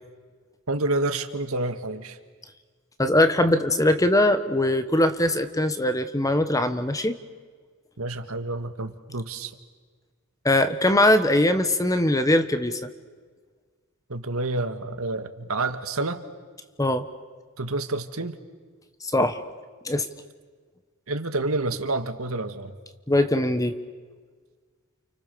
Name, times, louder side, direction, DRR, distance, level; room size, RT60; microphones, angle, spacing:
voice 1, 0.7-2.2 8.0-9.5 14.1-16.2 17.6-18.4 21.1-22.7, right 2 dB, 80° right, 8 dB, 1.8 m, -28 dB
voice 2, 3.0-7.2 10.4-12.9 16.8-17.1 19.0-19.4 19.8-20.1 23.1-23.8, left 1 dB, 15° left, 10 dB, 1.2 m, -21 dB
29.5 x 28.5 x 7.0 m, 1.5 s
head